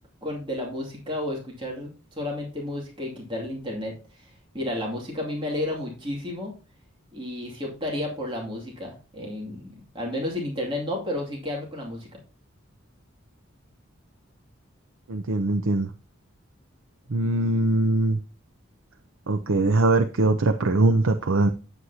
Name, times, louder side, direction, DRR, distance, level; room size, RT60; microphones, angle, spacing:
voice 1, 0.2-6.5 7.1-12.2, left 1 dB, 25° right, -2 dB, 2.5 m, -32 dB
voice 2, 15.1-15.9 17.1-18.2 19.3-21.5, right 2 dB, 80° right, 6 dB, 0.7 m, -22 dB
9.4 x 8.1 x 2.8 m, 0.33 s
head